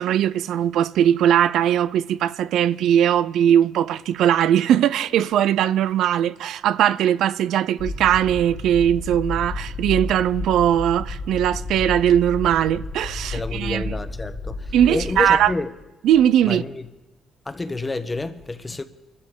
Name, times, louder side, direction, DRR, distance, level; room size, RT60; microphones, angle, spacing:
voice 1, 0.0-14.0 14.7-15.5 16.0-16.6, right 10 dB, 80° right, 0.4 m, -19 dB
sound 1, 7.8-15.5, left 3 dB, 40° left, 1.8 m, -32 dB
voice 2, 13.3-15.7 16.4-16.8 17.5-18.8, left 2 dB, 20° left, 1.0 m, -29 dB
24.0 x 12.5 x 3.7 m
cardioid pair, 90°, 0 cm